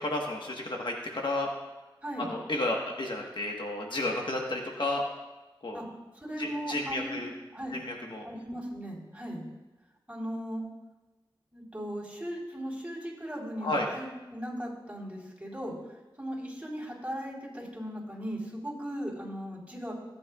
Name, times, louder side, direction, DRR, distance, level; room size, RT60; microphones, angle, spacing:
voice 1, 0.0-1.5 2.2-5.0 5.6-5.8 6.4-7.3 7.7-8.3 13.6-13.9, left 2 dB, 60° left, 0 dB, 1.4 m, -32 dB
voice 2, 6.1-7.2 7.5-7.8 8.2-9.5 10.1-10.6 11.5-19.9, equal, 15° right, -3 dB, 3.8 m, -37 dB
17.0 x 8.7 x 2.4 m, 1.1 s
cardioid pair, 45°, 9 cm